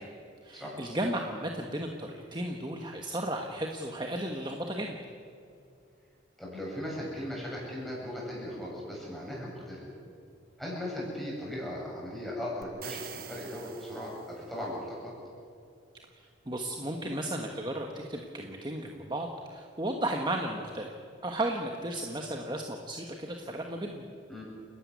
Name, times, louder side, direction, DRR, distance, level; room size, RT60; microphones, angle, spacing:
voice 1, 0.4-5.0 16.2-20.9 21.2-24.0, right 1 dB, 25° right, 2 dB, 1.4 m, -34 dB
voice 2, 6.4-9.8 10.6-15.1 24.3-24.4, left 1 dB, ahead, -5 dB, 7.9 m, -38 dB
sound 1, 12.6-14.7, right 8 dB, 50° right, 1.1 m, -45 dB
30.0 x 12.5 x 9.6 m, 2.5 s
head